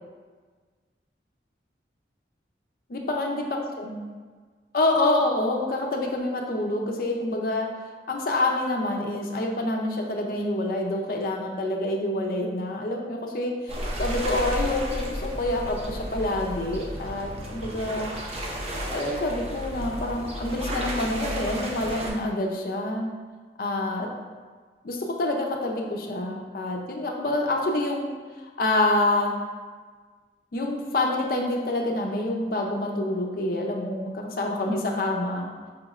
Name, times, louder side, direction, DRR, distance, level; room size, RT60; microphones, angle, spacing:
voice 1, 2.9-4.0 4.7-7.7 8.1-18.1 18.9-23.1 23.6-24.1 24.8-28.2 28.6-29.3 30.5-35.5, left 1 dB, 50° left, 1 dB, 0.4 m, -27 dB
sound 1, 13.7-22.1, equal, 35° right, 0.5 m, -33 dB
4.9 x 3.0 x 2.4 m, 1.5 s
head